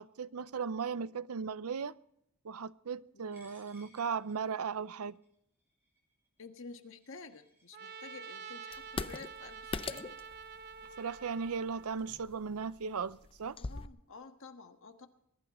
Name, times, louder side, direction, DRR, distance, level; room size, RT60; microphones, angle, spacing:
voice 1, 0.0-1.9 2.4-5.2 11.0-13.6, right 6 dB, 85° right, 0.6 m, -37 dB
voice 2, 3.1-3.4 6.4-10.2 13.6-15.1, left 4 dB, 65° left, 1.4 m, -51 dB
Coin (dropping), 3.3-10.1, equal, 10° right, 7.7 m, -67 dB
Trumpet, 7.7-12.2, right 6 dB, 50° right, 0.8 m, -48 dB
sound 1, 8.7-13.9, left 3 dB, 25° left, 0.5 m, -43 dB
21.5 x 11.5 x 4.3 m
head